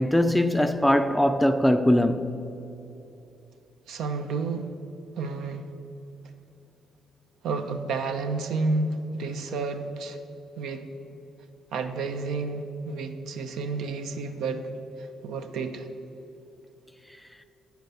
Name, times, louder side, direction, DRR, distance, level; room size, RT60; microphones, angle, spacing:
voice 1, 0.0-2.4, left 1 dB, 5° left, 0.3 m, -21 dB
voice 2, 3.9-4.7 5.2-5.7 7.4-10.2 10.6-10.9 11.7-14.7 15.0-15.9, right 3 dB, 80° right, 0.6 m, -30 dB
9.4 x 4.6 x 6.7 m
cardioid pair, 90°, 0 cm